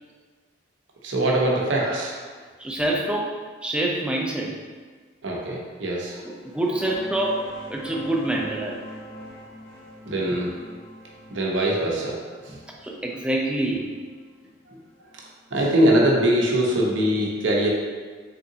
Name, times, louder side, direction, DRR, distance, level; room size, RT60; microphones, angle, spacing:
voice 1, 1.0-2.2 5.2-6.9 10.0-10.5 11.3-12.6 14.7-14.8 15.5-17.7, right 1 dB, 70° right, -2 dB, 0.7 m, -23 dB
voice 2, 2.6-4.5 6.4-8.8 12.8-13.9, right 1 dB, 5° right, -1 dB, 0.3 m, -26 dB
sound 1, 6.3-15.6, right 1 dB, 65° left, 1.0 m, -43 dB
3.8 x 3.4 x 2.7 m, 1.5 s
head